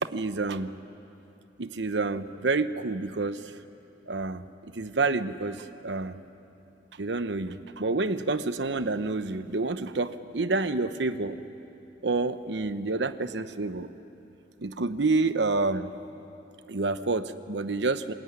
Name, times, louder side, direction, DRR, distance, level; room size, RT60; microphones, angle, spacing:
voice 1, 0.1-0.7 1.6-3.6 4.1-6.2 7.0-11.4 12.0-13.9 14.6-15.9 16.7-18.1, right 3 dB, 75° right, 11 dB, 0.9 m, -28 dB
26.5 x 20.5 x 9.7 m, 2.8 s
head